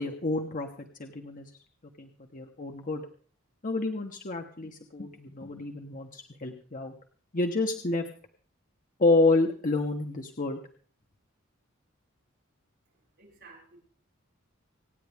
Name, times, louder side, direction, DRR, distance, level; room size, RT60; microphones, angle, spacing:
voice 1, 0.0-1.5 2.0-3.0 3.6-6.9 7.3-8.0 9.0-10.6, left 3 dB, 40° left, 3 dB, 1.2 m, -29 dB
voice 2, 12.9-13.8, right 3 dB, 60° right, -3 dB, 7.0 m, -54 dB
26.0 x 9.5 x 3.6 m, 0.44 s
head